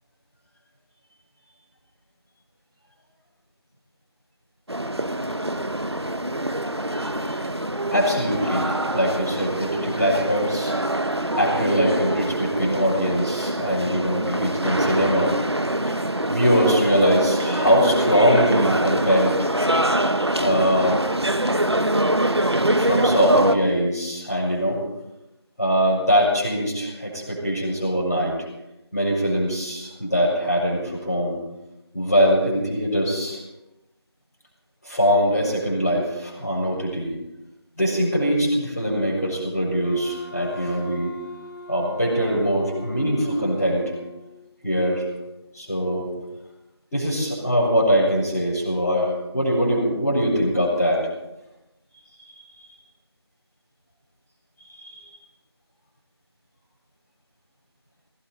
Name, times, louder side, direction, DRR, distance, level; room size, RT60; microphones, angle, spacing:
sound 1, 4.7-23.5, right 1 dB, 75° right, 1.3 m, -24 dB
voice 1, 6.9-7.4 7.9-10.7 11.3-15.3 15.8-16.0 16.3-19.3 20.4-21.0 22.8-24.8 25.6-28.3 28.9-31.4 31.9-33.4 34.8-37.1 37.8-41.1 41.7-43.8 44.6-45.0 45.5-46.1 46.9-51.0 54.8-54.9, equal, ahead, -20 dB, 3.3 m, -22 dB
Wind instrument woodwind instrument, 39.8-44.5, right 1 dB, 45° left, 2.2 m, -41 dB
18.5 x 16.5 x 4.2 m, 0.94 s
figure-of-eight pair, 175°, 14 cm